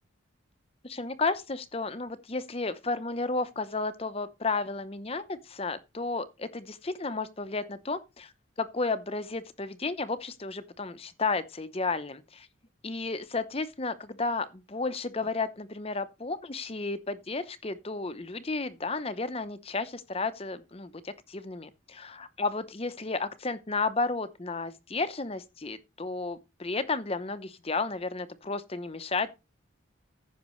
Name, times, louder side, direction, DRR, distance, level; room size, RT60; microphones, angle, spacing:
voice 1, 0.8-8.3 8.6-12.5 12.8-29.3, left 3 dB, 30° left, 0.8 m, -33 dB
15.0 x 5.9 x 3.1 m
head